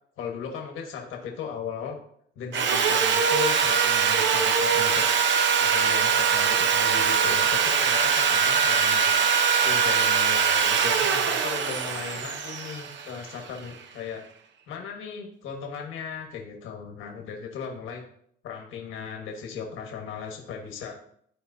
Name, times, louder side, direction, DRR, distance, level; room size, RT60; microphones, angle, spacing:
voice 1, 0.2-2.0 2.3-5.1 5.6-9.1 9.6-14.2 14.7-18.0 18.4-21.0, left 6 dB, 90° left, 2 dB, 1.4 m, -37 dB
Sawing, 2.5-13.6, right 6 dB, 65° right, 0.8 m, -22 dB
12.5 x 4.4 x 2.7 m, 0.65 s
cardioid pair, 90°, 20 cm